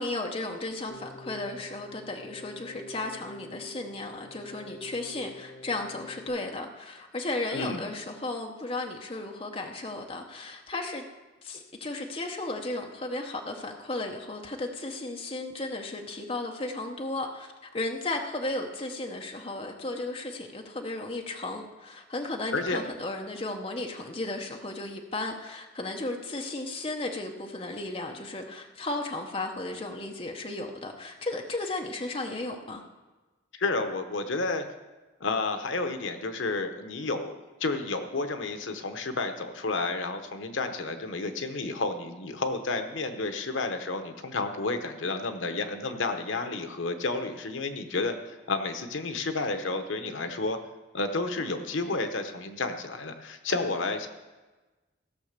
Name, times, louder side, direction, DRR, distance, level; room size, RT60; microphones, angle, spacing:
voice 1, 0.0-11.0 11.4-32.8, left 2 dB, 30° left, 2 dB, 0.9 m, -35 dB
Keyboard (musical), 0.9-6.3, left 1 dB, 65° left, 3.8 m, -46 dB
voice 2, 7.5-7.8 22.5-22.8 33.5-34.6 35.2-50.6 50.9-54.1, left 3 dB, 80° left, 7 dB, 0.9 m, -31 dB
15.5 x 5.8 x 6.6 m, 1.2 s
head